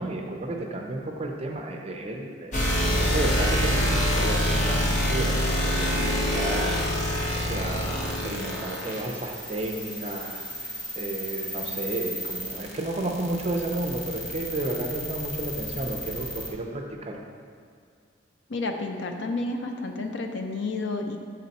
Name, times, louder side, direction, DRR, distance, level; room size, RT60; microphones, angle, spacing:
voice 1, 0.0-17.2, right 2 dB, 35° right, 2 dB, 0.6 m, -32 dB
sound 1, 2.5-16.5, equal, 40° left, 0.9 m, -28 dB
voice 2, 18.5-21.2, left 3 dB, 70° left, 4 dB, 0.6 m, -30 dB
7.8 x 4.2 x 4.1 m, 2.2 s
head